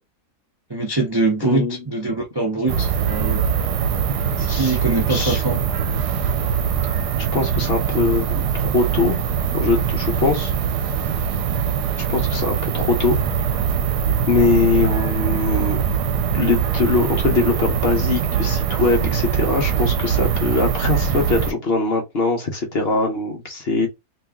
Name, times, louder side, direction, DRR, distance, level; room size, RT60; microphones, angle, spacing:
voice 1, 0.7-3.4 4.4-5.6, right 3 dB, 35° right, 0.4 m, -23 dB
voice 2, 1.4-1.8 4.5-4.8 5.1-5.4 6.8-7.0 7.3-9.2 9.5-10.5 12.1-13.2 14.3-15.8 16.3-23.9, left 3 dB, 45° left, 1.0 m, -22 dB
sound 1, 2.7-21.5, right 7 dB, 85° right, 1.2 m, -22 dB
3.0 x 2.8 x 3.5 m
omnidirectional pair, 1.7 m